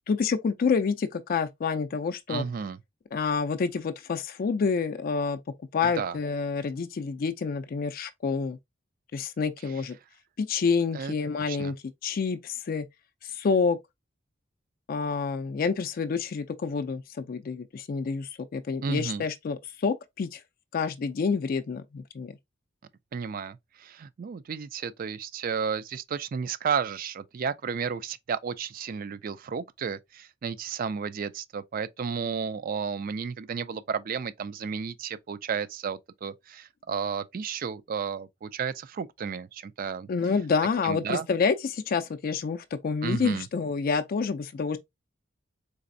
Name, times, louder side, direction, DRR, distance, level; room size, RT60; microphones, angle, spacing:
voice 1, 0.1-2.5 3.1-5.4 5.7-8.6 9.1-10.0 10.4-11.8 12.0-12.9 13.2-13.8 14.9-20.4 20.7-22.3 40.1-44.8, left 5 dB, 50° left, 0.4 m, -28 dB
voice 2, 2.3-2.8 5.8-6.2 10.9-11.7 18.8-19.2 23.1-40.1 40.8-41.3 43.0-43.5, right 6 dB, 45° right, 0.4 m, -33 dB
4.0 x 3.3 x 2.6 m
head